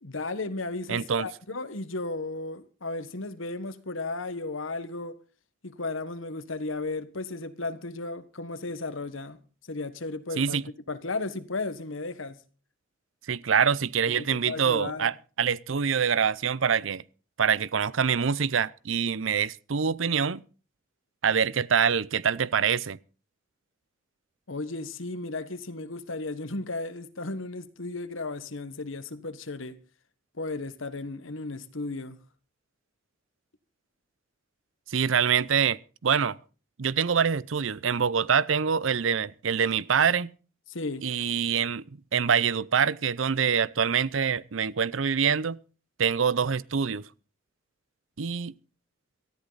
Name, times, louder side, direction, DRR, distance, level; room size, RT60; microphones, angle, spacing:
voice 1, 0.0-5.2 5.6-10.6 10.9-12.4 14.2-15.1 24.5-29.8 30.3-32.2 40.7-41.1, left 3 dB, 80° left, 1.4 m, -34 dB
voice 2, 0.9-1.3 10.4-10.6 13.3-17.0 17.4-20.4 21.2-23.0 34.9-36.4 36.8-40.3 41.0-41.9 42.1-45.6 46.0-47.0 48.2-48.5, right 7 dB, 75° right, 0.6 m, -25 dB
18.0 x 14.0 x 4.0 m
head